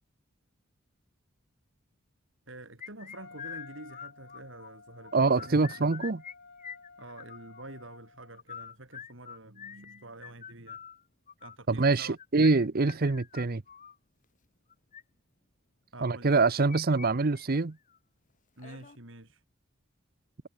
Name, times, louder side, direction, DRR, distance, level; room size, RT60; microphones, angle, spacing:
voice 1, 2.5-5.8 7.0-10.8 11.4-12.2 15.9-16.4 18.6-19.4, right 2 dB, 70° right, 6.2 m, -47 dB
sound 1, 2.8-4.7 5.0-6.3 6.6-7.6 8.3-14.0 14.7-15.0 16.3-17.1 17.4-17.5 17.9-18.0 18.6-19.0, left 7 dB, 40° left, 2.3 m, -45 dB
Wind instrument woodwind instrument, 3.1-8.4, left 4 dB, 60° left, 5.4 m, -53 dB
voice 2, 5.1-6.2 11.7-13.6 16.0-17.8, right 3 dB, 50° right, 0.8 m, -25 dB
head